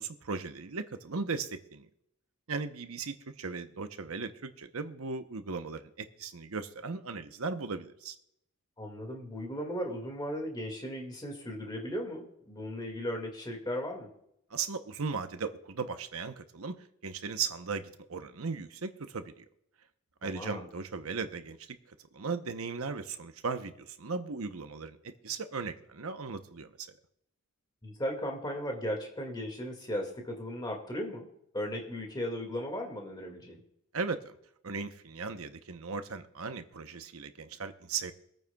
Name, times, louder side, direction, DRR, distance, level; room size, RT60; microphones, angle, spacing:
voice 1, 0.0-1.9 2.5-8.1 14.5-16.8 17.0-19.4 20.2-21.8 22.1-26.9 33.9-34.3 34.6-38.1, right 4 dB, 70° right, 9 dB, 0.9 m, -37 dB
voice 2, 8.8-14.1 20.2-20.7 27.8-31.3 31.5-33.6, equal, 20° left, 2 dB, 2.1 m, -36 dB
25.5 x 9.1 x 2.3 m, 0.77 s
head